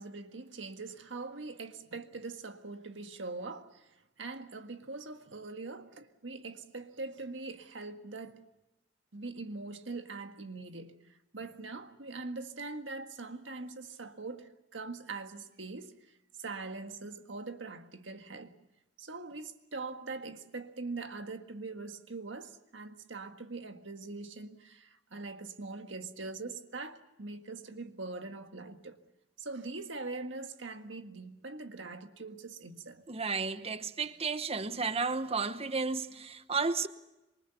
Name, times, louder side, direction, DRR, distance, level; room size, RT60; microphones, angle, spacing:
voice 1, 0.0-3.9 4.2-8.5 9.1-10.9 11.3-16.0 16.4-18.6 19.0-29.0 29.4-33.0, right 3 dB, 70° right, 1.8 m, -42 dB
voice 2, 33.1-36.9, right 4 dB, 30° right, 0.9 m, -33 dB
26.0 x 23.5 x 6.9 m
head